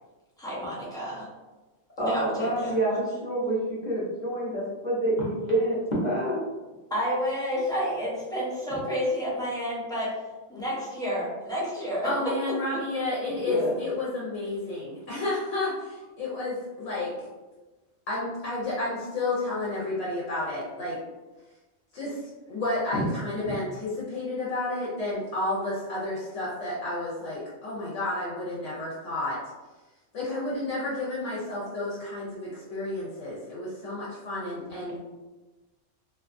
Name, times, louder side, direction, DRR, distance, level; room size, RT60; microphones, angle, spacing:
voice 1, 0.4-1.3 2.1-2.7 6.9-10.1 10.5-12.3, equal, 5° left, -8 dB, 0.6 m, -30 dB
voice 2, 2.0-6.4 13.4-13.8 22.9-23.1 23.4-23.5, right 1 dB, 45° left, -6 dB, 0.7 m, -27 dB
voice 3, 12.0-17.1 18.1-21.0 21.9-22.2 22.5-29.4 30.1-35.0, left 2 dB, 70° left, -7 dB, 1.0 m, -31 dB
2.4 x 2.3 x 2.5 m, 1.2 s
omnidirectional pair, 1.3 m